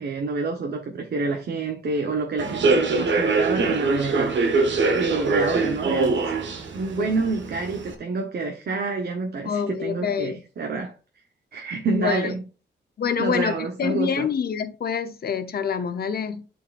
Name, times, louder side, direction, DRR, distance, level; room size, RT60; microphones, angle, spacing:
voice 1, 0.0-4.5 4.9-6.3 6.7-10.9 11.5-12.4 13.2-14.3, right 4 dB, 55° right, 1.1 m, -28 dB
Human voice / Subway metro underground, 2.4-7.9, right 3 dB, 70° right, 1.3 m, -23 dB
voice 2, 9.4-10.4 11.9-12.3 13.0-13.5 13.8-16.5, left 7 dB, 55° left, 0.9 m, -26 dB
11.0 x 4.7 x 2.5 m
wide cardioid pair, 145°, 20 cm